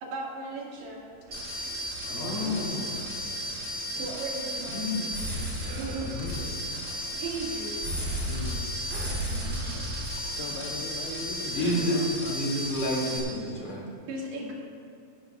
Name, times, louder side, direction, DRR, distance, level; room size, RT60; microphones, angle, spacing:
voice 1, 0.0-1.2 4.0-5.2 7.2-7.8 9.3-9.9 11.1-11.2 14.1-14.5, right 2 dB, 70° right, -3 dB, 3.8 m, -37 dB
sound 1, 0.5-0.6 2.0-2.9 4.7-5.1 6.1-6.2 6.7-6.8 8.9-9.3 11.2-11.3 11.6-12.0, left 3 dB, 30° right, 2.6 m, -34 dB
sound 2, 1.3-13.2, equal, 15° right, 2.5 m, -34 dB
sound 3, 1.3-12.1, right 5 dB, 85° right, 3.1 m, -45 dB
voice 2, 2.1-3.6 6.0-6.6 8.3-8.7 10.3-12.4, left 5 dB, 75° left, 0 dB, 2.4 m, -40 dB
voice 3, 11.5-13.8, equal, 45° left, -4 dB, 3.1 m, -28 dB
18.0 x 12.5 x 2.3 m, 2.4 s
omnidirectional pair, 5.2 m